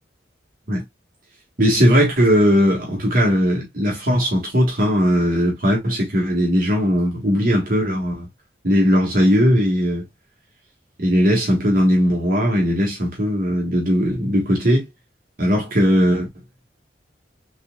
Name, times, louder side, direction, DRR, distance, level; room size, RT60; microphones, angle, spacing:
voice 1, 1.6-8.3 8.6-10.0 11.0-14.9 15.4-16.3, equal, 50° right, 1.5 m, -18 dB
4.2 x 3.6 x 2.2 m
head